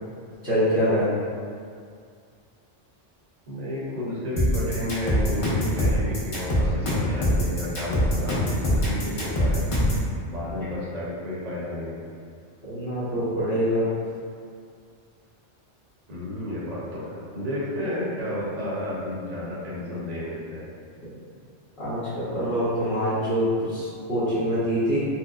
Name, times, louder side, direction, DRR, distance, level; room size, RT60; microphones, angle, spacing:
voice 1, 0.4-1.1 12.6-13.9 21.8-25.0, equal, 60° left, -14 dB, 1.2 m, -25 dB
voice 2, 3.5-9.7 10.3-12.1 16.1-20.6, left 1 dB, 40° right, -7 dB, 0.8 m, -32 dB
sound 1, 4.4-10.0, equal, 35° left, 0.6 m, -23 dB
4.3 x 2.1 x 2.4 m, 2.2 s
omnidirectional pair, 1.3 m